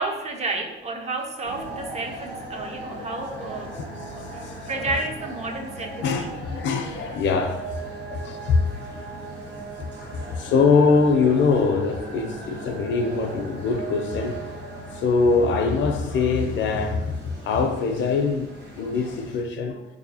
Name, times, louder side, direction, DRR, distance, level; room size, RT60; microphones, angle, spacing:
voice 1, 0.0-3.8 4.3-6.4, right 2 dB, 35° right, 0.6 m, -31 dB
sound 1, 1.4-19.4, right 2 dB, 60° right, 1.0 m, -38 dB
voice 2, 4.2-4.5 6.0-7.6 8.1-8.7 9.8-14.5 14.9-18.5 18.8-19.8, left 4 dB, 70° left, 0.5 m, -23 dB
3.9 x 2.7 x 2.7 m
cardioid pair, 90°, 20 cm